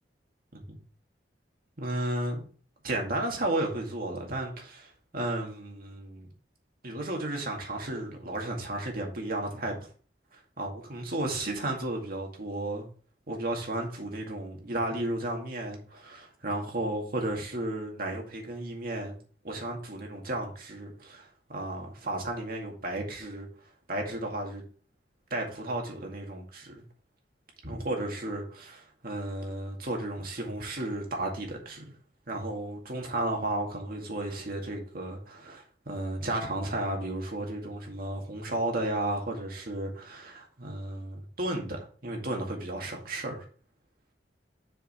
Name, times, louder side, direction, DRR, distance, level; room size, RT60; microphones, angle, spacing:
voice 1, 1.8-2.4 2.8-6.3 6.8-9.9 10.3-12.9 13.3-19.2 19.4-23.5 23.9-24.6 25.3-26.8 27.6-31.9 32.3-43.4, right 1 dB, 55° right, 2.1 m, -33 dB
6.9 x 5.0 x 4.7 m
head